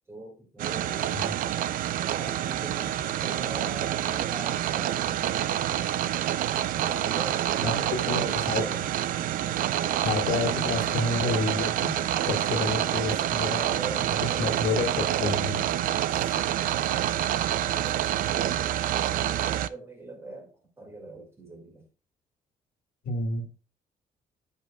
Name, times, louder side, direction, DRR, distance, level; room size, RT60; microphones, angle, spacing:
voice 1, 0.1-1.2 2.2-6.0 6.8-9.0 9.7-10.1 13.1-15.2 16.0-16.4 17.5-21.9, right 2 dB, 15° right, 2.2 m, -42 dB
sound 1, 0.6-19.7, right 12 dB, 70° right, 0.5 m, -27 dB
voice 2, 8.1-8.6 10.0-12.0 12.2-13.6 14.4-15.7 23.0-23.5, left 3 dB, 80° left, 1.9 m, -29 dB
14.0 x 5.4 x 2.3 m
cardioid pair, 175°, 14 cm